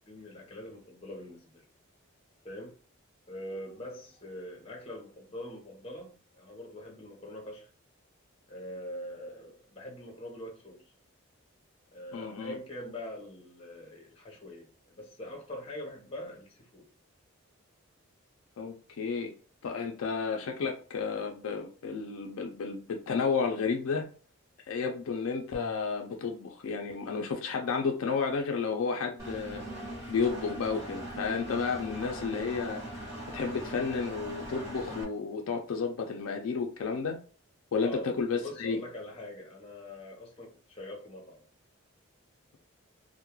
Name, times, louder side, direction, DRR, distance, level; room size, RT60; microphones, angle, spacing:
voice 1, 0.1-1.7 2.4-2.8 3.3-7.7 8.5-10.8 11.9-16.9 37.8-38.1 38.4-41.4, left 1 dB, 25° left, 0 dB, 0.7 m, -43 dB
voice 2, 12.1-12.6 18.6-19.3 19.6-24.1 24.7-29.6 30.1-32.8 33.3-37.2 37.7-38.8, left 5 dB, 70° left, 3 dB, 0.4 m, -32 dB
Engine, 29.2-35.0, right 1 dB, 15° right, 0.9 m, -40 dB
2.2 x 2.1 x 2.9 m, 0.39 s
head